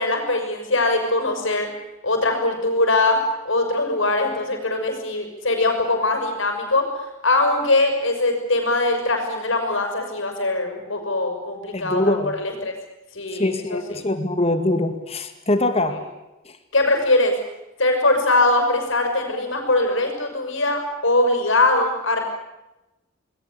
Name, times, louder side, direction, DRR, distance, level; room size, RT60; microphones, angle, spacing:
voice 1, 0.0-1.7 2.0-3.2 3.4-6.9 7.2-12.7 13.1-14.0 16.7-17.3 17.8-22.2, left 2 dB, 65° left, 4 dB, 6.6 m, -21 dB
voice 2, 11.7-12.3 13.3-16.0 16.5-16.6, left 1 dB, 30° left, 8 dB, 2.2 m, -23 dB
28.5 x 20.5 x 8.4 m, 0.98 s
head